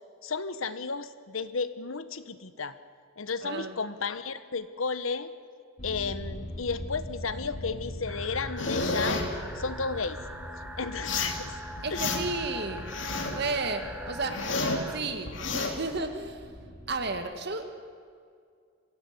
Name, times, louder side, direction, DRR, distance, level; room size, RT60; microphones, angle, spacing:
voice 1, 0.2-2.8 3.2-5.3 5.8-9.2 9.5-10.2 10.8-11.5 11.9-12.1, left 4 dB, 85° left, 12 dB, 1.2 m, -33 dB
voice 2, 3.4-3.8 11.8-12.9 13.3-14.4 14.9-16.5 16.9-17.8, right 3 dB, 55° right, 7 dB, 1.7 m, -33 dB
sound 1, 5.8-17.2, equal, 45° left, 3.2 m, -42 dB
sound 2, 8.1-15.0, equal, 10° right, 1.4 m, -42 dB
sound 3, 8.6-9.3 11.0-11.4 11.8-12.4 12.8-13.4 13.8-14.9 15.3-15.7, left 3 dB, 65° left, 2.8 m, -30 dB
23.0 x 16.0 x 9.6 m, 2.2 s
head